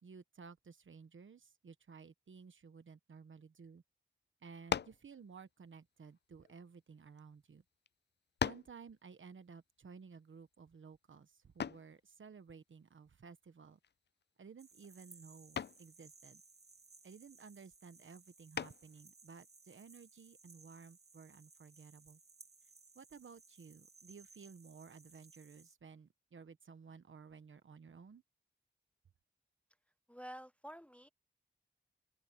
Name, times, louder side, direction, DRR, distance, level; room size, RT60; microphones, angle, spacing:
voice 1, 0.0-3.8 4.4-7.6 8.4-13.8 14.4-16.4 17.0-22.2 22.9-28.2, right 5 dB, 85° right, 1.2 m, -55 dB
sound 1, 4.7-5.1 6.0-7.2 7.9-8.0 8.4-8.8 11.6-11.9 13.8-14.2 14.6-14.9 15.6-15.9 18.5-19.0, left 7 dB, 60° left, 0.4 m, -39 dB
sound 2, 14.6-25.8, right 4 dB, 55° right, 2.9 m, -62 dB
voice 2, 30.1-31.1, equal, 5° left, 0.6 m, -50 dB
open air
wide cardioid pair, 95°, 20 cm